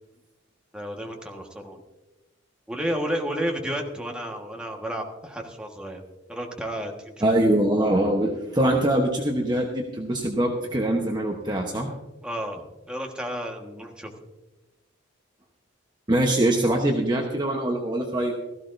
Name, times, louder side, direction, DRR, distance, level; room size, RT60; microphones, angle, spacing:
voice 1, 0.7-1.8 2.7-6.0 6.3-7.3 12.2-14.1, equal, 5° right, 0 dB, 1.4 m, -32 dB
voice 2, 7.2-11.9 16.1-18.3, right 1 dB, 20° right, 1 dB, 1.0 m, -23 dB
17.0 x 14.5 x 2.6 m, 1.1 s
head